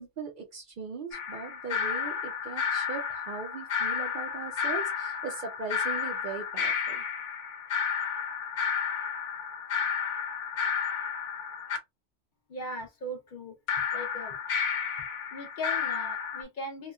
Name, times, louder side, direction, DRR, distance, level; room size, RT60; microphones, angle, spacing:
voice 1, 0.0-7.0, right 5 dB, 60° right, 0.5 m, -39 dB
sound 1, 1.1-11.8 13.7-16.4, left 7 dB, 85° left, 1.1 m, -32 dB
voice 2, 12.5-13.5 13.9-14.4 15.3-16.9, left 1 dB, 50° left, 0.7 m, -38 dB
2.9 x 2.2 x 2.3 m
omnidirectional pair, 1.2 m